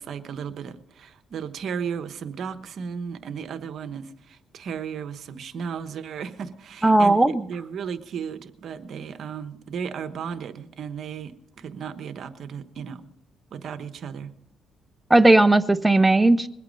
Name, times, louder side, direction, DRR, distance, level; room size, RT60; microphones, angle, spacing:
voice 1, 0.0-13.1 13.5-14.3, right 7 dB, 65° right, 11 dB, 1.0 m, -35 dB
voice 2, 6.8-7.4 15.1-16.5, right 2 dB, 10° right, 11 dB, 0.6 m, -17 dB
21.5 x 8.5 x 5.3 m, 0.77 s
cardioid pair, 90°, 0 cm